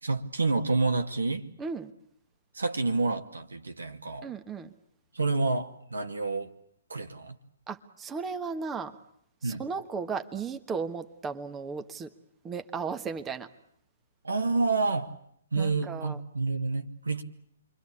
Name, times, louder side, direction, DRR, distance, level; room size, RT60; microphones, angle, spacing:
voice 1, 0.0-1.5 2.5-4.3 5.1-6.5 6.9-7.4 9.4-9.6 14.2-15.2 15.5-17.2, right 3 dB, 80° right, 7 dB, 2.3 m, -28 dB
voice 2, 1.6-1.9 4.2-4.7 7.7-8.9 9.4-12.1 12.4-13.5 15.6-16.2, right 5 dB, 15° right, 7 dB, 1.5 m, -35 dB
28.5 x 23.5 x 8.6 m, 0.70 s
figure-of-eight pair, 125°, 0 cm